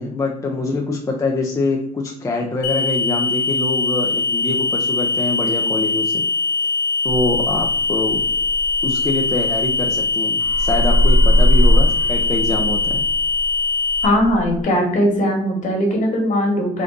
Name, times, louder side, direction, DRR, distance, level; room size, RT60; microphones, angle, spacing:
voice 1, 0.0-6.2 7.0-8.2 8.8-13.0, left 2 dB, 20° left, 1 dB, 0.5 m, -24 dB
sound 1, 2.6-14.0, left 3 dB, 80° left, 0.9 m, -21 dB
sound 2, 7.2-10.1 10.4-14.6, equal, 55° right, 0.9 m, -20 dB
voice 2, 14.0-16.8, equal, 50° left, 0 dB, 1.4 m, -19 dB
3.7 x 2.5 x 3.5 m, 0.74 s
cardioid pair, 110°, 17 cm